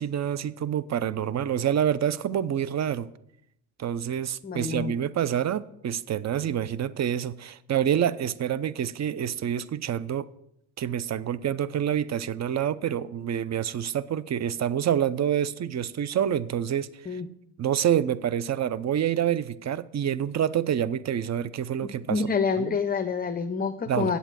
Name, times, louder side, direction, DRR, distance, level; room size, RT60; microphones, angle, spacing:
voice 1, 0.0-3.1 3.8-10.3 10.8-17.2 17.6-22.2 22.6-22.8 23.9-24.1, right 9 dB, 40° right, 17 dB, 0.7 m, -27 dB
voice 2, 4.4-4.9 17.1-17.3 21.8-24.2, left 5 dB, 20° left, 7 dB, 0.7 m, -27 dB
8.3 x 8.1 x 7.5 m, 0.77 s
supercardioid pair, 75°, 42 cm